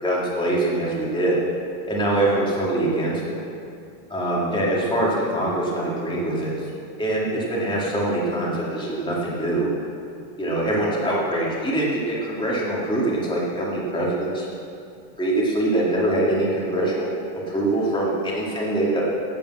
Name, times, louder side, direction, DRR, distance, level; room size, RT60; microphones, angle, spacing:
voice 1, 0.0-1.4 1.9-3.3 4.1-6.5 7.0-9.7 10.4-14.4 15.2-17.1 17.5-19.0, right 1 dB, 5° left, -6 dB, 0.8 m, -23 dB
8.6 x 8.6 x 7.9 m, 2.5 s
omnidirectional pair, 4.2 m